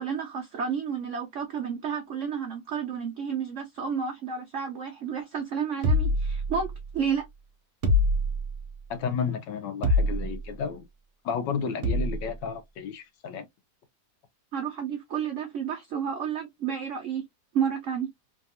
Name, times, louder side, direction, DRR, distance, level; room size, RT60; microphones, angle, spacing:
voice 1, 0.0-6.7 6.9-7.2 14.5-17.2 17.5-18.1, right 7 dB, 85° right, 0.6 m, -31 dB
sound 1, 5.8-6.9 7.8-8.7 9.8-10.5 11.8-12.3, left 1 dB, 55° right, 0.8 m, -25 dB
voice 2, 8.9-10.8 11.2-13.5, left 6 dB, 80° left, 1.3 m, -32 dB
3.4 x 2.3 x 2.6 m
omnidirectional pair, 2.0 m